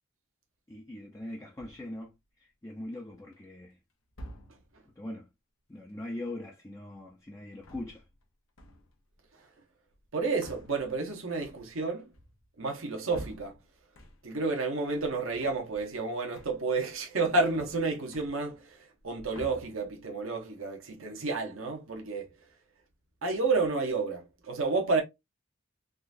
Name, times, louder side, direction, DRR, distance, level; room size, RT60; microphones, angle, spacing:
voice 1, 0.7-3.8 5.0-5.3 5.7-8.0, left 1 dB, 15° left, 0.5 m, -41 dB
sound 1, 1.6-2.0 2.8-3.4 4.1-4.9 7.4-8.3 8.6-9.1 9.9-14.5 14.8-16.1 16.3-16.8 17.1-18.7 19.0-20.1, equal, 85° left, 0.9 m, -50 dB
voice 2, 10.1-12.0 12.6-13.5 14.2-22.3 23.2-25.0, right 3 dB, 80° right, 0.9 m, -30 dB
3.7 x 2.4 x 2.5 m
head